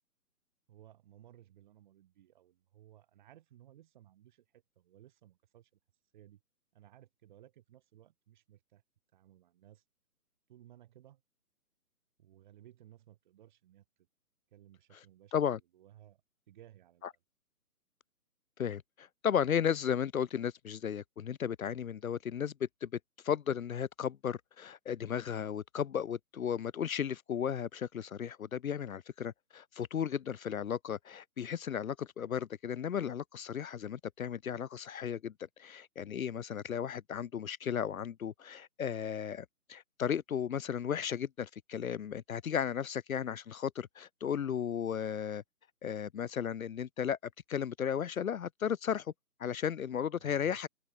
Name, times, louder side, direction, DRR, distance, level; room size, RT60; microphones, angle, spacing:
voice 1, 0.7-5.7 6.1-6.4 6.7-8.8 9.1-9.8 10.5-11.2 12.2-13.8 14.5-15.3 15.7-16.2 16.5-17.2 50.2-50.6, right 12 dB, 30° right, 1.7 m, -59 dB
voice 2, 18.6-22.9 23.2-35.3 35.6-45.4 45.8-47.2 47.5-49.1 49.4-50.7, left 8 dB, 65° left, 0.8 m, -35 dB
open air
hypercardioid pair, 150°, 46 cm